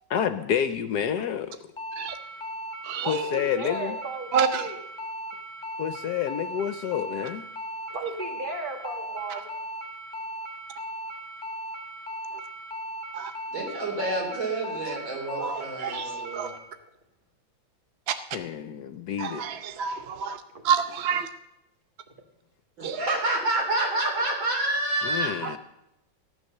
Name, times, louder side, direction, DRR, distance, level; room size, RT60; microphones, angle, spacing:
voice 1, 0.1-1.6 3.1-4.0 5.8-7.4 18.3-19.4 25.0-25.6, left 9 dB, 70° left, 11 dB, 1.1 m, -29 dB
sound 1, 1.8-16.6, equal, 15° left, 1.6 m, -37 dB
voice 2, 3.0-4.8 7.9-9.5 20.5-20.6, right 2 dB, 25° right, 3 dB, 2.0 m, -35 dB
voice 3, 13.5-16.5 22.8-25.3, right 2 dB, 80° right, 0 dB, 4.1 m, -28 dB
voice 4, 15.4-16.1 16.3-16.5 18.1-18.2 19.2-20.4 20.6-21.3 22.8-23.0 25.4-25.5, right 7 dB, 60° right, 10 dB, 0.6 m, -28 dB
15.0 x 9.7 x 6.6 m, 0.89 s
omnidirectional pair, 2.1 m